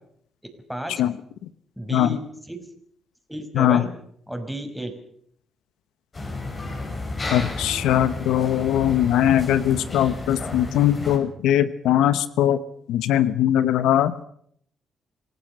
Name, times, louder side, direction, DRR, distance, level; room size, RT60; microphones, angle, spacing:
voice 1, 0.7-1.0 1.8-2.6 3.3-3.9 4.3-4.9, right 1 dB, ahead, 5 dB, 5.6 m, -32 dB
sound 1, 6.1-11.2, left 2 dB, 35° left, 7.6 m, -32 dB
voice 2, 7.3-12.6 12.9-14.1, left 11 dB, 85° left, 14 dB, 1.0 m, -20 dB
27.0 x 17.5 x 6.7 m, 0.66 s
cardioid pair, 90°, 0 cm